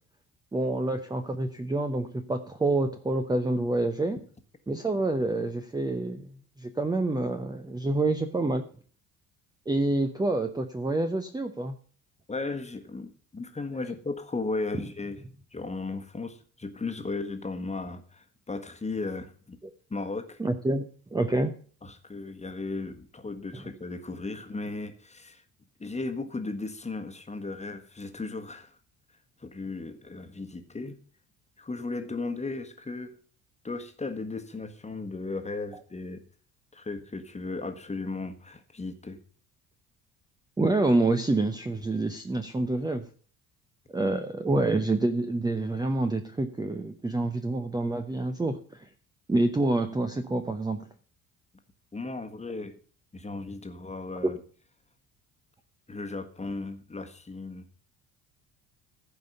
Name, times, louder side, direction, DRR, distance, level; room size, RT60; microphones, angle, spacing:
voice 1, 0.5-4.2 4.7-6.3 6.6-8.7 9.7-11.7 20.4-21.6 40.6-43.1 43.9-48.9 49.3-50.9, right 2 dB, 10° right, 6 dB, 0.8 m, -27 dB
voice 2, 12.3-15.2 15.5-19.6 19.9-20.4 21.8-25.4 25.8-28.8 29.4-31.0 31.6-33.1 33.6-36.2 36.7-39.2 51.9-52.7 53.1-54.4 55.9-57.6, left 3 dB, 15° left, 7 dB, 1.5 m, -36 dB
15.0 x 5.3 x 6.6 m, 0.43 s
figure-of-eight pair, 55°, 43 cm